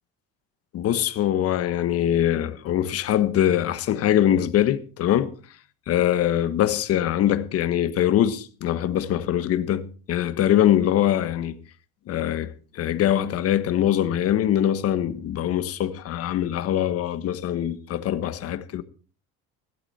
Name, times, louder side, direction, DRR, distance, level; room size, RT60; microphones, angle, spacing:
voice 1, 0.7-5.3 5.9-11.5 12.1-12.5 12.7-18.8, left 11 dB, 50° left, 1.4 m, -23 dB
16.5 x 12.5 x 4.3 m
cardioid pair, 140°, 31 cm